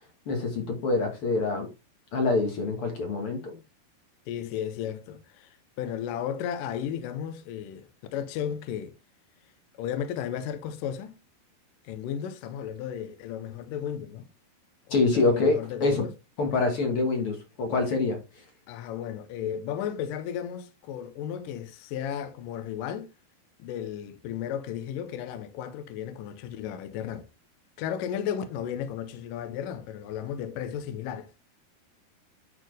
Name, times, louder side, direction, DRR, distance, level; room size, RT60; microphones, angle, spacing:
voice 1, 0.2-1.7 2.1-3.6 14.9-16.0 16.4-18.4, left 3 dB, 55° left, 1.5 m, -26 dB
voice 2, 4.3-9.0 9.8-11.2 11.8-14.3 14.9-16.1 18.7-23.1 23.6-27.3 27.8-31.3, left 9 dB, 80° left, 2.1 m, -34 dB
10.5 x 4.3 x 3.2 m
omnidirectional pair, 4.5 m